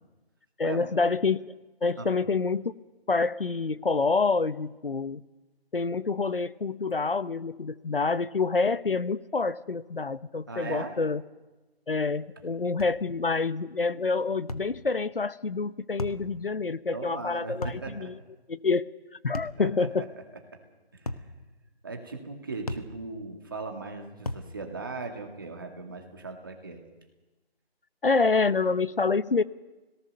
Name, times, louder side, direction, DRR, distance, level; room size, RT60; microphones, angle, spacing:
voice 1, 0.6-1.5 1.8-2.7 3.1-5.2 5.7-11.2 11.9-18.1 18.5-18.8 19.2-20.0 28.0-29.4, left 4 dB, 60° left, 16 dB, 0.9 m, -27 dB
voice 2, 10.5-11.0 16.9-18.1 19.6-20.1 20.5-20.6 20.9-21.2 21.8-26.8, right 3 dB, 20° right, 3 dB, 2.1 m, -38 dB
Deep thud punch, 12.8-13.0 14.5-14.7 16.0-16.2 17.6-17.9 19.3-19.6 21.1-21.3 22.7-22.9 24.3-24.5, left 2 dB, 35° left, 1.3 m, -35 dB
29.5 x 18.0 x 6.6 m, 1.1 s
figure-of-eight pair, 175°, 32 cm